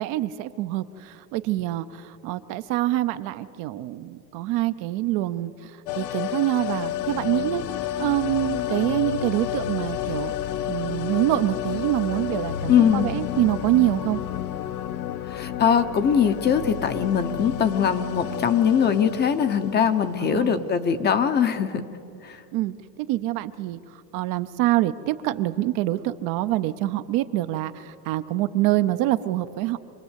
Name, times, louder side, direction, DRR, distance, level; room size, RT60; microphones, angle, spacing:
voice 1, 0.0-7.6 8.0-10.3 10.7-14.2 20.2-20.6 22.5-29.8, right 15 dB, 40° right, 11 dB, 0.6 m, -25 dB
sound 1, 5.9-20.7 21.0-21.1, left 11 dB, 65° left, 1.1 m, -31 dB
voice 2, 12.7-13.1 15.3-21.8 22.2-22.4, left 7 dB, 20° left, 10 dB, 0.8 m, -21 dB
26.5 x 20.5 x 8.2 m, 2.6 s
supercardioid pair, 150°, 48 cm